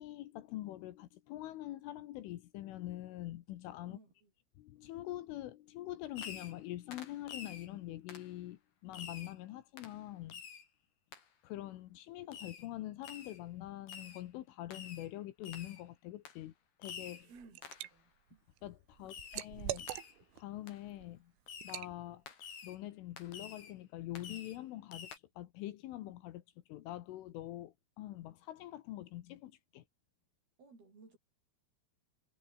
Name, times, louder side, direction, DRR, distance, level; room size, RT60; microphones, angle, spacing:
voice 1, 0.0-4.0 4.6-10.4 11.4-16.5 16.8-17.3 18.6-19.9 20.4-21.3 21.6-22.2 22.6-25.1 25.4-26.4 26.7-29.8, left 15 dB, 75° left, 3.7 m, -45 dB
voice 2, 3.8-4.3 17.3-18.1 19.0-19.2 30.6-31.2, right 4 dB, 50° right, 9.7 m, -59 dB
Fireworks, 6.2-6.6 6.9-7.7 8.1-8.3 8.9-9.4 9.8-10.0 10.3-10.7 11.1-11.2 12.3-12.7 13.0-13.4 13.9-14.2 14.7-15.1 15.4-15.8 16.3-16.4 16.8-17.3 17.6-17.9 19.1-19.5 19.8-20.2 20.7-20.8 21.5-21.8 22.3-22.8 23.2-23.7 24.2-24.6 24.9-25.2, left 7 dB, 50° left, 5.5 m, -49 dB
Liquid, 17.1-17.9 18.3-20.4 20.9-21.1 21.6-21.9, right 15 dB, 75° right, 3.7 m, -43 dB
omnidirectional pair, 5.9 m